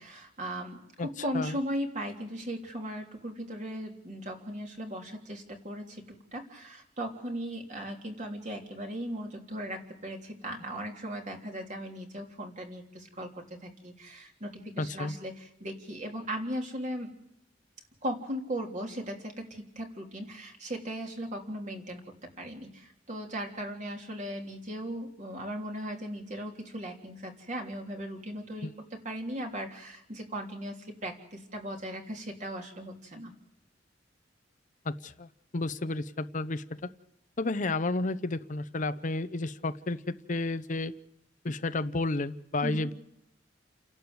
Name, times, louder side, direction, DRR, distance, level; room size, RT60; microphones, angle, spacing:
voice 1, 0.0-6.0 6.3-17.1 18.0-22.0 22.4-33.3 42.6-42.9, equal, 40° right, 2 dB, 3.3 m, -38 dB
voice 2, 14.8-15.1 28.6-28.7 34.9-35.3 35.5-36.9 37.4-40.9 41.4-42.9, left 2 dB, 45° left, 12 dB, 0.8 m, -31 dB
29.5 x 11.5 x 8.0 m, 0.86 s
head